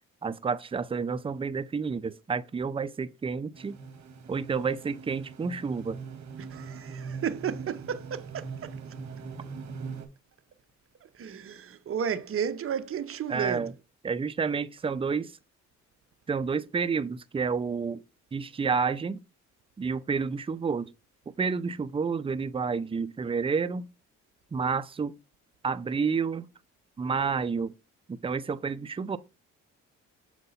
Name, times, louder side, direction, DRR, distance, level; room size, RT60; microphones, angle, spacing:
voice 1, 0.2-3.8 4.3-6.0 13.3-13.7 14.0-15.4 16.3-18.0 18.3-19.2 19.8-20.9 21.4-23.9 24.5-25.1 25.6-26.5 27.0-27.7 28.1-29.2, right 5 dB, 20° right, 0.5 m, -30 dB
sound 1, 3.5-10.1, right 5 dB, 65° right, 1.6 m, -41 dB
voice 2, 6.4-8.8 11.0-13.8, right 8 dB, 45° right, 0.9 m, -33 dB
6.6 x 4.5 x 4.1 m
cardioid pair, 90°, 30 cm